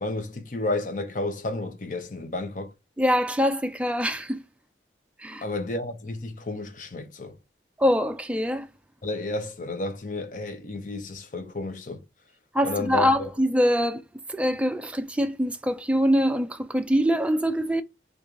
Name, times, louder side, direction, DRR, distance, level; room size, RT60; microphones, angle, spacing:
voice 1, 0.0-2.7 5.4-7.4 9.0-12.0 12.6-13.1, left 2 dB, 45° left, 0.8 m, -31 dB
voice 2, 3.0-4.4 5.2-5.4 7.8-8.7 12.5-14.0 14.3-17.8, equal, 5° right, 0.3 m, -24 dB
3.0 x 2.6 x 3.6 m
head